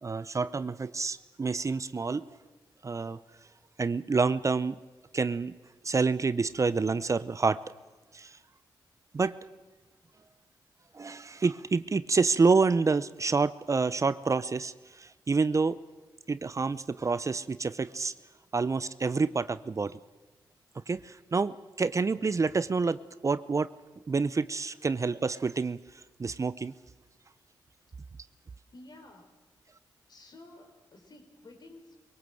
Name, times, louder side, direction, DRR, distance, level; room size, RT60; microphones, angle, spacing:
voice 1, 0.0-2.3 2.8-3.2 3.8-4.8 5.1-5.5 5.8-7.6 8.1-8.3 9.1-9.4 10.9-15.8 16.3-18.1 18.5-20.0 20.9-23.7 24.1-25.8 26.2-26.7, right 4 dB, 40° right, 16 dB, 0.7 m, -28 dB
voice 2, 28.7-29.3 30.1-32.0, left 2 dB, 55° left, 4 dB, 4.3 m, -52 dB
22.0 x 18.0 x 7.9 m, 1.2 s
cardioid pair, 55°, 8 cm